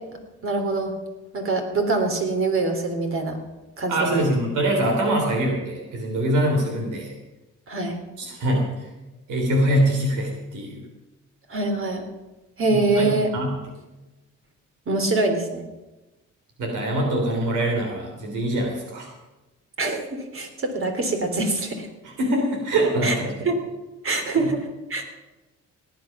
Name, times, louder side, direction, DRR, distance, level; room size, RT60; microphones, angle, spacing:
voice 1, 0.4-0.9 1.3-3.4 3.8-4.3 7.7-8.0 11.5-12.1 12.6-13.3 14.9-15.6 19.8-21.9 23.0-23.1 23.4-23.5 24.0-25.0, right 3 dB, 45° right, 4 dB, 3.2 m, -24 dB
voice 2, 3.9-7.1 8.2-8.7 9.3-10.8 12.7-13.5 16.6-19.1 22.2-23.5 24.4-24.5, right 1 dB, 80° right, 1 dB, 3.5 m, -24 dB
18.0 x 9.3 x 6.0 m, 1.1 s
cardioid pair, 90°, 30 cm